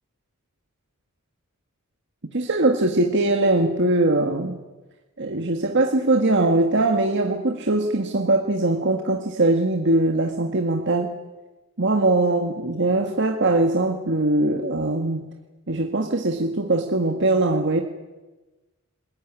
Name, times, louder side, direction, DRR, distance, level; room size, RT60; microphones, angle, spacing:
voice 1, 2.3-4.6 5.2-11.1 11.8-15.3 15.7-17.8, right 2 dB, 55° right, 4 dB, 1.7 m, -21 dB
26.5 x 15.5 x 9.9 m, 1.2 s
head